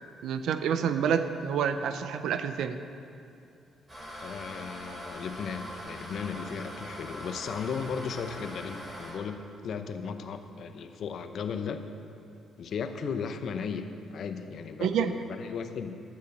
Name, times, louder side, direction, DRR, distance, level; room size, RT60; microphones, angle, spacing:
voice 1, 0.2-2.8 14.8-15.1, right 7 dB, 75° right, 10 dB, 0.6 m, -28 dB
sound 1, 3.9-9.1, equal, 25° right, 3.0 m, -42 dB
voice 2, 4.2-9.4 9.6-11.8 12.6-16.0, left 6 dB, 65° left, 8 dB, 0.7 m, -36 dB
11.5 x 8.2 x 5.3 m, 2.6 s
cardioid pair, 90°, 0 cm